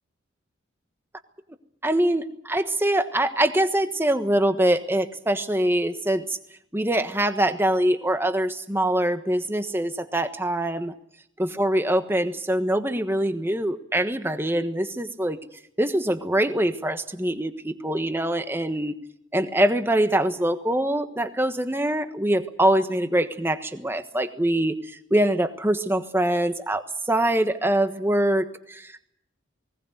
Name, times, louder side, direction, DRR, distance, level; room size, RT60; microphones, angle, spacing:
voice 1, 1.8-6.4 6.7-10.9 11.4-15.4 15.8-18.9 19.3-29.0, right 1 dB, 10° right, 8 dB, 1.3 m, -24 dB
20.0 x 18.5 x 9.2 m, 0.74 s
head